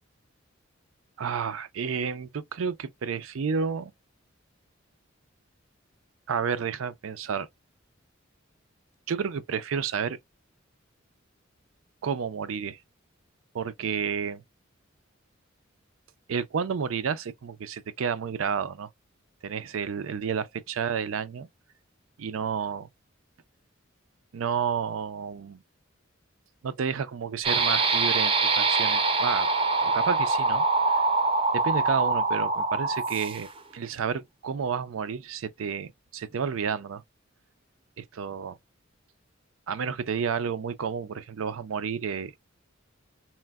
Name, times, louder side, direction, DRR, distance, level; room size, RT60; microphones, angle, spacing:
voice 1, 1.2-3.9 6.3-7.5 9.1-10.2 12.0-12.8 13.5-14.4 16.3-18.9 19.4-21.5 22.2-22.9 24.3-25.6 26.6-29.5 29.8-30.6 31.5-37.0 38.0-38.6 39.7-42.3, right 6 dB, 80° right, 0.4 m, -31 dB
sound 1, 27.4-33.6, right 3 dB, 30° right, 0.5 m, -24 dB
4.3 x 2.1 x 2.2 m
head